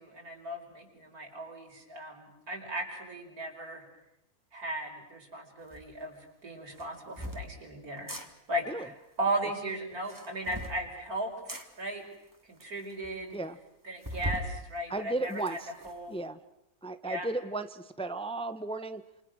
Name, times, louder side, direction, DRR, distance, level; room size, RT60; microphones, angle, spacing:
voice 1, 0.0-3.8 4.5-8.2 8.5-12.0 12.5-13.4 13.8-15.6 15.8-16.1 17.0-17.3, right 1 dB, 90° right, 1 dB, 5.7 m, -37 dB
sound 1, 5.7-5.8 6.7-7.4 8.0-8.3 9.9-10.8 11.5-11.7 12.3-12.4 12.6-12.7 13.0-13.1 14.0-14.5 15.0-15.9, equal, 15° right, 2.3 m, -38 dB
voice 2, 14.9-15.7 16.1-16.4 16.8-19.0, right 2 dB, 5° left, 10 dB, 0.9 m, -34 dB
29.0 x 28.0 x 6.4 m, 0.85 s
omnidirectional pair, 1.5 m